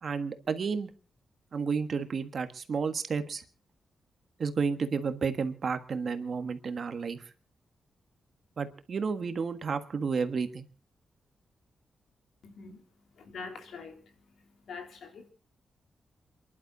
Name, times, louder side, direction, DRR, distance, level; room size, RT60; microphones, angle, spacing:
voice 1, 0.0-0.9 1.5-3.4 4.4-7.3 8.6-10.7, right 5 dB, 45° right, 1.4 m, -31 dB
voice 2, 12.4-12.8 13.2-14.1 14.7-15.3, left 5 dB, 70° left, 3.5 m, -44 dB
28.0 x 11.5 x 4.0 m
wide cardioid pair, 175°, 0 cm